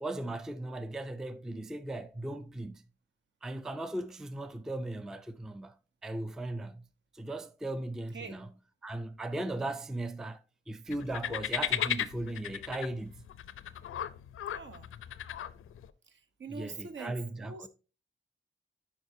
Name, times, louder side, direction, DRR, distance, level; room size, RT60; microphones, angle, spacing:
voice 1, 0.0-2.8 3.4-5.7 6.0-6.9 7.1-8.5 8.8-10.4 10.7-13.3 16.5-17.7, right 2 dB, ahead, 0.3 m, -37 dB
sound 1, 10.9-15.9, left 11 dB, 90° left, 0.5 m, -36 dB
voice 2, 14.5-14.9 16.1-17.7, right 5 dB, 65° right, 0.9 m, -44 dB
10.5 x 4.8 x 2.6 m
wide cardioid pair, 160°, 21 cm